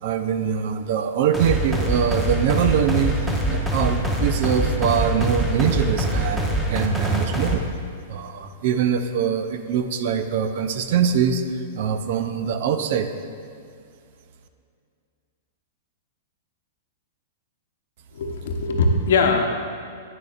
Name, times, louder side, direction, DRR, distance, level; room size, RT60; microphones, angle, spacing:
voice 1, 0.0-7.6 8.1-13.1, right 7 dB, 60° right, 9 dB, 0.5 m, -23 dB
sound 1, 1.3-7.5, right 1 dB, 5° right, 0.8 m, -24 dB
voice 2, 18.1-19.4, left 3 dB, 70° left, 3 dB, 0.8 m, -20 dB
8.9 x 6.6 x 2.5 m, 2.3 s
hypercardioid pair, 130°, 0 cm